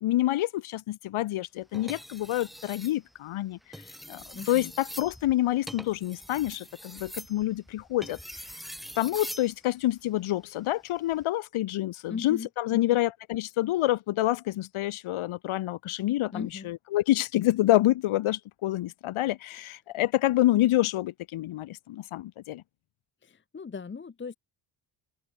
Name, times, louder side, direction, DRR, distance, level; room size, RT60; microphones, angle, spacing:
voice 1, 0.0-3.6 4.1-8.2 9.0-22.6, left 15 dB, 90° left, 1.0 m, -27 dB
sound 1, 1.7-3.0 3.6-9.5 11.0-11.2, equal, ahead, 3.3 m, -43 dB
voice 2, 4.3-4.7 12.1-13.0 16.3-16.7 23.2-24.4, left 5 dB, 25° left, 0.9 m, -38 dB
wide cardioid pair, 135°, 48 cm